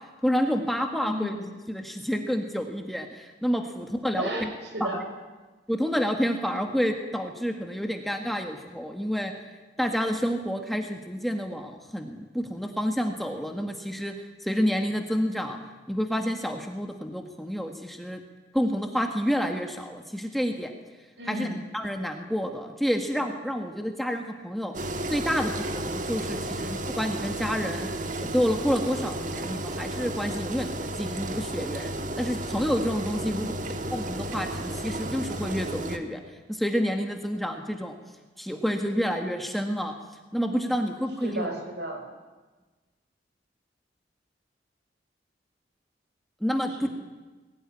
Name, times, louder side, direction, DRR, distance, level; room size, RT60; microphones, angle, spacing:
voice 1, 0.2-1.3 1.7-4.5 4.8-5.0 5.7-9.3 9.8-14.1 14.4-15.6 15.9-18.2 18.5-20.7 21.3-21.5 21.7-24.7 25.1-27.9 28.2-33.5 33.9-36.2 36.5-38.0 38.4-39.9 40.3-41.5 46.4-46.9, equal, ahead, 4 dB, 1.7 m, -29 dB
voice 2, 1.0-1.5 4.0-5.0 21.2-21.6 33.3-33.6 41.2-42.0 46.8-46.9, right 1 dB, 70° right, 3 dB, 5.8 m, -33 dB
Engine, 24.7-36.0, right 1 dB, 45° right, 1.7 m, -33 dB
21.5 x 17.5 x 10.0 m, 1.3 s
head